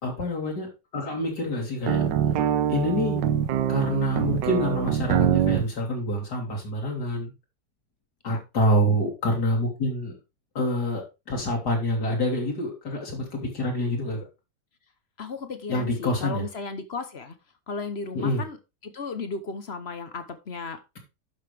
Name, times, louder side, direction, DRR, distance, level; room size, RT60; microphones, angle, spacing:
voice 1, 0.0-2.0 2.7-3.2 3.7-7.3 8.2-10.1 10.5-14.3 15.7-16.5 18.1-18.4, left 1 dB, 65° left, 0 dB, 3.2 m, -27 dB
sound 1, 1.8-5.7, right 9 dB, 85° right, 1.4 m, -24 dB
voice 2, 15.2-17.3 17.7-18.6 18.8-21.0, left 4 dB, 45° left, 10 dB, 1.0 m, -35 dB
11.5 x 5.7 x 3.4 m, 0.26 s
omnidirectional pair, 1.9 m